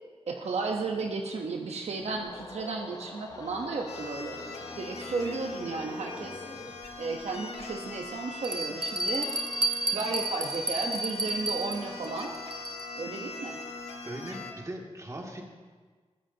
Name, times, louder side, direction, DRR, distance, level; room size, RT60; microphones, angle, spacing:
voice 1, 0.3-4.4 4.8-6.3 7.0-9.3 9.9-12.3 12.9-13.6, right 4 dB, 85° right, 2 dB, 1.1 m, -34 dB
sound 1, 2.0-6.9, left 3 dB, 35° left, 1.0 m, -44 dB
sound 2, 3.9-14.5, left 3 dB, 75° left, 1.4 m, -41 dB
Bell, 6.8-6.9 7.6-7.7 8.4-13.0, right 2 dB, 50° right, 1.0 m, -32 dB
voice 2, 14.0-15.4, right 1 dB, 30° right, -1 dB, 2.4 m, -39 dB
20.5 x 14.5 x 2.9 m, 1.4 s
wide cardioid pair, 90°, 11 cm